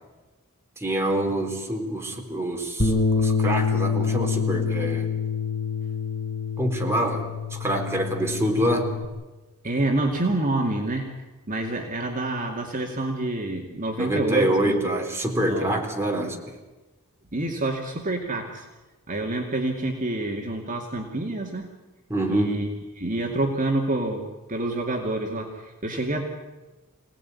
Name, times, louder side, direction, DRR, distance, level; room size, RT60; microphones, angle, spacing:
voice 1, 0.8-5.1 6.6-9.0 14.0-16.6 22.1-22.6, right 1 dB, 10° right, 1 dB, 4.0 m, -26 dB
Bass guitar, 2.8-9.0, left 5 dB, 55° left, 4.9 m, -26 dB
voice 2, 9.6-11.1 11.5-14.8 15.5-15.8 17.3-18.7 19.1-21.7 22.3-22.7 23.0-26.2, right 2 dB, 40° right, 1 dB, 2.4 m, -27 dB
27.0 x 18.5 x 9.7 m, 1.2 s
head